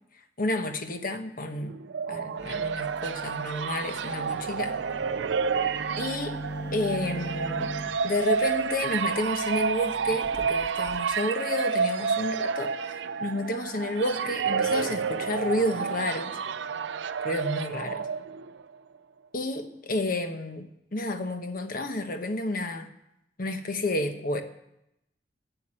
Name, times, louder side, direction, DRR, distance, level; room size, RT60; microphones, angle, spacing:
voice 1, 0.4-1.8 2.1-4.8 6.0-6.4 6.7-7.7 8.0-16.4 17.2-18.1 19.3-22.9 23.4-24.4, left 1 dB, 50° left, 7 dB, 1.1 m, -30 dB
sound 1, 1.6-18.6, right 6 dB, 85° right, 0.5 m, -30 dB
sound 2, 2.4-11.0, right 1 dB, 15° left, 1.8 m, -41 dB
11.5 x 8.0 x 7.8 m, 0.84 s
head